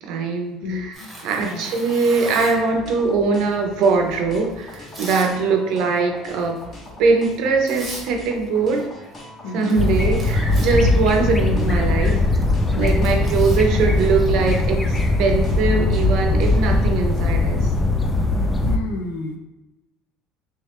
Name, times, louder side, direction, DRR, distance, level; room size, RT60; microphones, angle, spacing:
voice 1, 0.0-0.9 1.2-6.6 7.0-8.9 9.5-12.2 12.8-17.7, right 4 dB, 60° right, 3 dB, 0.6 m, -21 dB
voice 2, 0.6-1.1 1.4-1.7 5.3-5.4 9.4-9.8 12.7-13.1 18.6-19.4, left 3 dB, 75° left, 2 dB, 0.5 m, -30 dB
Tearing, 0.9-2.7 3.5-5.3 5.6-6.0 6.4-6.6 7.3-7.4 7.7-8.1 8.4-9.2 9.5-14.6, right 1 dB, 15° right, 1.0 m, -39 dB
sound 1, 1.4-16.8, left 2 dB, 30° left, 1.1 m, -41 dB
sound 2, 9.8-18.8, left 2 dB, 10° left, 0.3 m, -20 dB
3.3 x 2.9 x 3.2 m, 1.0 s
cardioid pair, 150°, 0 cm